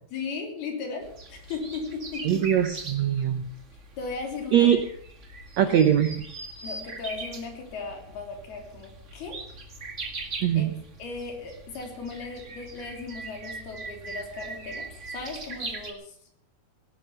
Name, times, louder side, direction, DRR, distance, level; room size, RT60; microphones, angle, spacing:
voice 1, 0.1-2.7 4.0-4.7 5.7-5.8 6.6-9.4 10.6-10.7 11.0-16.2, left 4 dB, 80° left, 2 dB, 5.2 m, -37 dB
sound 1, 1.0-15.9, right 3 dB, 40° right, 1.1 m, -41 dB
voice 2, 2.3-3.4 4.5-4.8 5.6-6.2 10.4-10.7, right 10 dB, 75° right, 8 dB, 1.6 m, -21 dB
18.5 x 12.0 x 5.9 m, 0.64 s
omnidirectional pair, 4.4 m